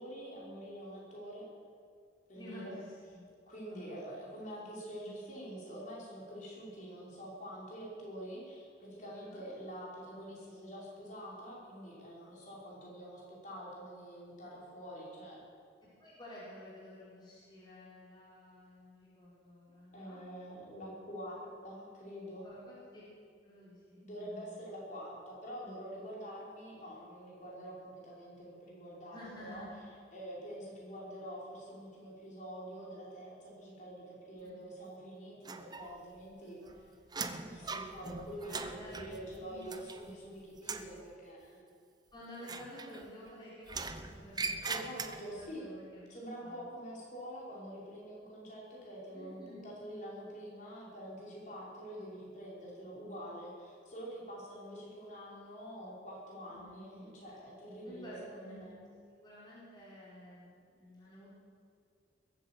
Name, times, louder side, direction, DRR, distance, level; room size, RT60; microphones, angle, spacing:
voice 1, 0.0-1.4 2.3-2.8 3.5-15.4 19.9-22.5 24.0-29.6 30.1-36.9 37.4-41.7 44.7-45.8 46.1-58.7, equal, 45° left, -5 dB, 5.2 m, -46 dB
voice 2, 2.4-3.2 3.6-4.0 9.2-9.4 16.0-20.2 22.4-23.0 23.4-24.7 29.1-29.7 34.4-34.5 36.4-36.8 38.5-39.0 39.4-39.7 42.1-46.0 46.4-46.6 49.1-49.6 56.5-56.8 57.8-58.8 59.2-61.3, left 1 dB, 25° left, -9 dB, 4.4 m, -52 dB
sound 1, 35.5-36.2 36.5-40.3 40.6-41.0 42.4-43.3 43.7-45.5, right 4 dB, 25° right, 0.7 m, -41 dB
21.5 x 8.9 x 7.6 m, 2.2 s
head